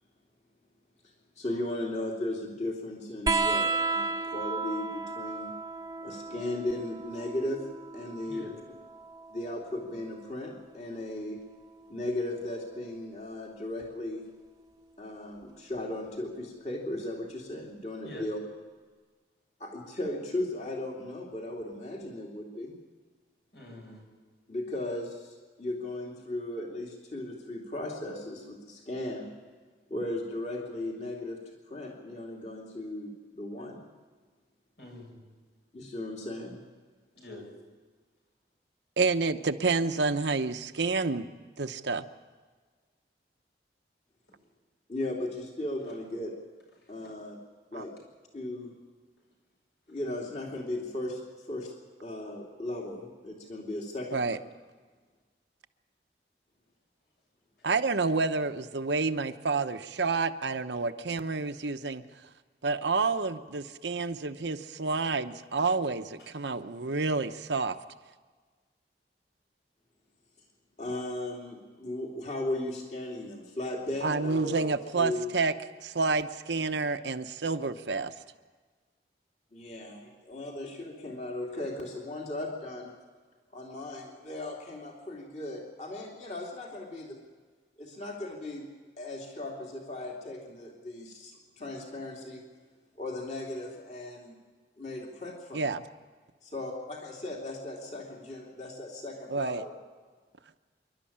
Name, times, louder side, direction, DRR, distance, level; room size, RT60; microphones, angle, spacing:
voice 1, 1.4-5.5 6.0-7.6 7.9-8.4 9.3-11.4 11.9-14.2 15.0-18.4 19.6-22.7 24.5-29.3 29.9-31.4 31.7-33.8 35.7-36.6 44.9-46.3 46.9-47.4 47.7-47.9 48.3-48.7 49.9-51.7 52.0-54.4 70.8-75.3 79.5-82.9 83.5-87.2 87.8-88.6 89.0-92.4 93.0-94.3 94.8-95.7 96.4-99.7, left 1 dB, 40° left, -1 dB, 2.9 m, -36 dB
sound 1, 3.3-10.3 11.7-12.5 13.8-13.9, right 4 dB, 20° right, 1.0 m, -34 dB
voice 2, 23.5-24.0 34.8-35.3 37.1-37.5 47.0-47.1 66.2-66.3, left 1 dB, 75° left, -1 dB, 7.6 m, -45 dB
voice 3, 39.0-41.3 41.6-42.0 47.7-47.8 54.1-54.4 57.6-62.0 62.6-67.8 74.0-75.5 75.8-78.1 95.5-95.8 99.3-99.6, right 4 dB, 90° right, 8 dB, 0.9 m, -29 dB
27.5 x 12.0 x 8.7 m, 1.4 s
head